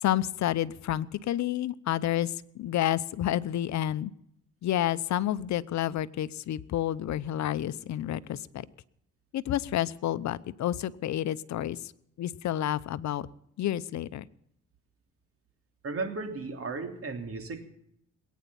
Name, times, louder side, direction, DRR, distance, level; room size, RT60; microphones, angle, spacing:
voice 1, 0.0-4.1 4.6-8.7 9.3-11.8 12.2-13.3 13.6-14.2, left 12 dB, 65° left, 15 dB, 0.8 m, -30 dB
voice 2, 15.8-17.6, right 3 dB, 50° right, 5 dB, 3.2 m, -35 dB
20.5 x 9.4 x 7.0 m, 0.73 s
cardioid pair, 90°, 30 cm